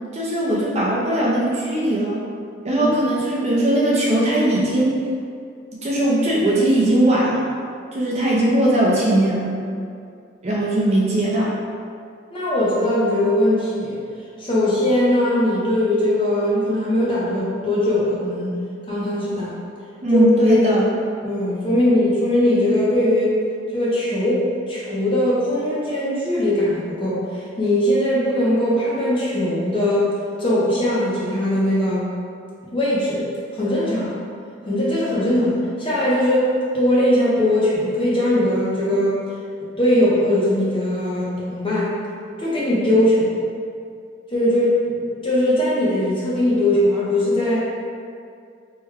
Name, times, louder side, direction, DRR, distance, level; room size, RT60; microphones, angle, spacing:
voice 1, 0.1-2.2 2.6-5.0 5.8-7.4 7.9-9.6 10.4-11.5 20.0-21.0, right 1 dB, 35° right, -6 dB, 0.5 m, -19 dB
voice 2, 12.3-14.0 14.4-18.6 18.9-19.5 20.1-20.6 21.2-23.3 23.7-30.1 30.4-32.1 32.7-33.2 33.5-34.1 34.6-36.5 36.7-39.2 39.8-41.9 42.4-43.4 44.3-47.6, left 1 dB, 25° left, -7 dB, 0.6 m, -20 dB
3.1 x 2.2 x 3.4 m, 2.3 s
head